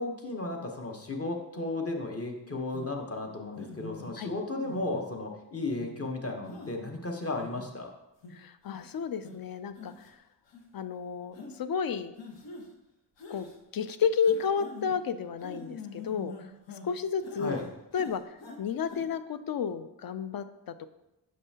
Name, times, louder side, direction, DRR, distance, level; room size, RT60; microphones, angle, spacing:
voice 1, 0.0-7.9 17.4-17.7, left 2 dB, 35° left, 2 dB, 1.0 m, -34 dB
sound 1, 2.7-2.9 3.6-4.1 4.6-5.1 5.7-5.9 6.5-6.7 7.2-7.7 8.2-8.3 8.7-8.9 9.2-9.3 9.7-10.1 10.5-10.6 11.3-11.5 12.2-12.7 13.2-13.6 14.2-14.9 15.4-16.9 17.2-17.7 17.9-18.6 18.9-19.0, left 4 dB, 75° left, 1.0 m, -44 dB
voice 2, 8.3-10.2 10.7-12.1 13.3-13.5 13.7-16.5 16.8-17.6 17.9-20.9, left 6 dB, 55° left, 12 dB, 0.5 m, -32 dB
6.3 x 5.3 x 2.8 m, 0.92 s
cardioid pair, 70°, 43 cm